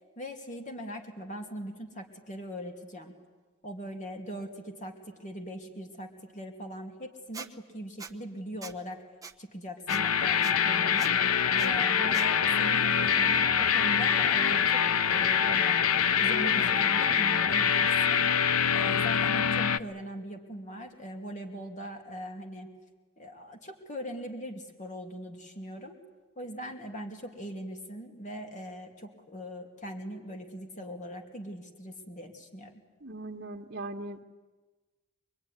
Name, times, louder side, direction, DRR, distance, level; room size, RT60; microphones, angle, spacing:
voice 1, 0.2-3.1 3.6-9.0 9.4-11.2 11.5-15.8 16.2-18.2 18.7-22.7 23.2-26.0 26.4-32.8, equal, 35° left, 4 dB, 2.6 m, -40 dB
Squeak, 7.3-7.5 8.0-8.1 8.6-8.8 9.2-9.3 9.9-10.0 10.4-10.5 11.0-11.1 11.6-11.7 12.1-12.3, right 5 dB, 15° right, 1.1 m, -42 dB
sound 1, 9.9-19.8, left 7 dB, 80° left, 0.8 m, -25 dB
voice 2, 33.0-34.2, right 2 dB, 45° right, -3 dB, 1.6 m, -39 dB
25.5 x 22.0 x 10.0 m, 1.3 s
head